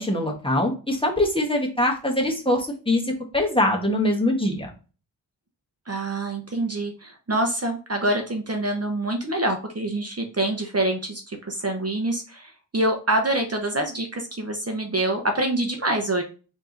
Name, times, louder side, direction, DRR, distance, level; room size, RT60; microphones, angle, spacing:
voice 1, 0.0-4.7, left 1 dB, 10° left, 0 dB, 1.2 m, -23 dB
voice 2, 5.9-16.2, right 1 dB, 35° right, 3 dB, 0.9 m, -26 dB
4.6 x 2.9 x 3.9 m, 0.35 s
wide cardioid pair, 80°, 44 cm